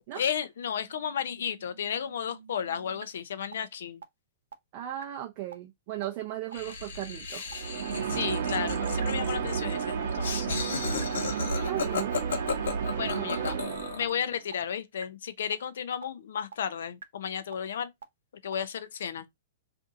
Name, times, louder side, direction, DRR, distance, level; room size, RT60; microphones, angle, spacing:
voice 1, 0.1-4.0 8.1-10.5 11.4-11.7 13.0-13.6 13.9-17.9 18.4-19.3, left 8 dB, 70° left, 0.5 m, -33 dB
sound 1, 0.6-3.0 3.5-3.6 4.0-4.1 4.5-4.6 5.0-5.1 5.5-5.6 6.0-6.1 6.5-6.6 7.0-7.1 7.5-7.6 8.0-8.1 8.5-8.6 9.0-9.1 9.5-9.6 10.0-10.1 10.5-10.6 11.0-11.1 11.5-11.6 12.0-12.1 12.5-12.6 13.0-13.1 13.5-13.6 14.0-14.1 14.5-14.6 15.0-15.1 15.5-15.6 16.0-16.1 16.5-16.6 17.0-17.1 17.5-17.6 18.0-18.1 18.5-18.6, right 7 dB, 85° right, 0.5 m, -46 dB
voice 2, 4.7-7.4 11.7-12.2 13.1-13.8, right 13 dB, 35° right, 0.5 m, -37 dB
Laughter, 6.5-14.1, left 5 dB, 85° left, 1.1 m, -34 dB
sound 2, 7.5-14.4, right 7 dB, 55° right, 0.9 m, -32 dB
2.6 x 2.5 x 3.6 m
hypercardioid pair, 165°, 0 cm